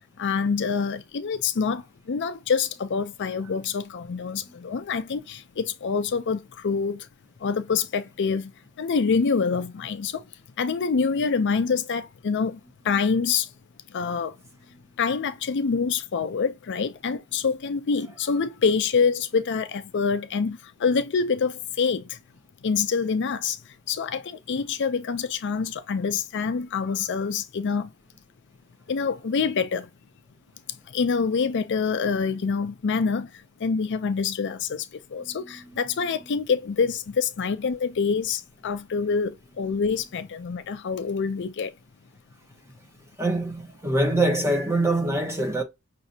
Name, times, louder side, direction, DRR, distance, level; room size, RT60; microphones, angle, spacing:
voice 1, 0.2-7.1 7.4-8.5 8.8-10.3 10.6-12.6 12.8-13.5 13.9-14.4 15.0-22.2 22.6-27.9 28.9-29.9 30.9-41.7, left 5 dB, 55° left, 0.4 m, -26 dB
voice 2, 43.2-45.6, right 1 dB, 15° right, 1.0 m, -24 dB
5.9 x 2.6 x 2.7 m
head